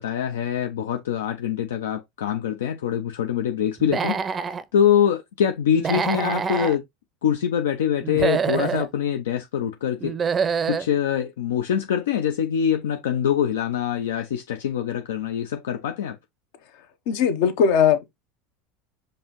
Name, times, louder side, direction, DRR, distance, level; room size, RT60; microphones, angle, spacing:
voice 1, 0.0-4.4 4.7-6.8 7.2-10.1 10.7-16.2, left 9 dB, 85° left, 0.5 m, -24 dB
Human voice / Animal, 3.8-4.6 5.8-6.7 8.0-8.9 10.0-10.9, right 6 dB, 30° right, 0.5 m, -25 dB
voice 2, 17.1-18.1, left 7 dB, 70° left, 0.9 m, -19 dB
5.3 x 2.7 x 3.0 m
hypercardioid pair, 95°, 0 cm